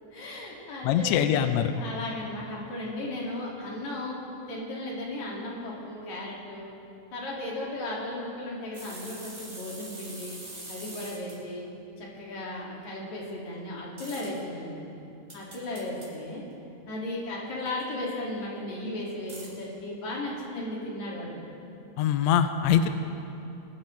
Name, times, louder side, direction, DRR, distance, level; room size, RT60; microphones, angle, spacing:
voice 1, 0.1-4.2 4.5-6.7 7.1-10.4 10.7-11.6 12.0-14.9 15.3-16.5 16.9-21.4 22.7-22.9, left 1 dB, 65° left, -4 dB, 3.6 m, -36 dB
voice 2, 0.8-1.7 22.0-22.9, left 9 dB, 80° left, 9 dB, 1.6 m, -23 dB
sound 1, 8.7-11.3 14.0-14.3 15.3-16.1 17.7-17.8 19.3-19.5, right 1 dB, 20° right, 3.0 m, -43 dB
22.0 x 12.0 x 3.2 m, 2.8 s
omnidirectional pair, 3.7 m